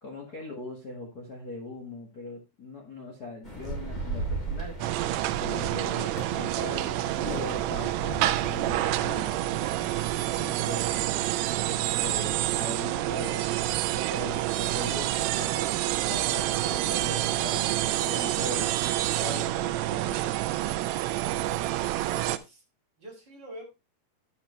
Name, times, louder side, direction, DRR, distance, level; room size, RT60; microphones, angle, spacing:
voice 1, 0.0-4.7 5.4-9.3 10.4-11.0 11.6-13.5 13.9-18.7 19.2-20.5, left 2 dB, 65° left, -1 dB, 0.9 m, -40 dB
sound 1, 3.4-11.2, right 2 dB, 10° left, 2.6 m, -37 dB
sound 2, 4.8-22.4, right 15 dB, 85° right, 2.7 m, -28 dB
voice 2, 21.7-22.6 23.0-23.7, right 1 dB, 30° right, -2 dB, 3.2 m, -47 dB
10.0 x 8.1 x 3.2 m, 0.26 s
omnidirectional pair, 4.6 m